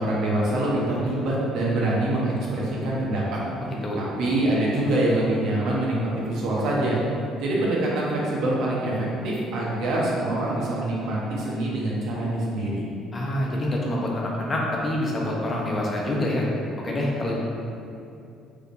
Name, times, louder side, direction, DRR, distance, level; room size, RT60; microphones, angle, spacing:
voice 1, 0.0-3.4 4.0-7.0 7.4-12.9, right 1 dB, 65° right, -5 dB, 1.0 m, -25 dB
voice 2, 13.1-16.4 16.8-17.4, left 1 dB, 30° left, -3 dB, 0.7 m, -26 dB
4.7 x 3.4 x 2.6 m, 2.6 s
cardioid pair, 115°, 0 cm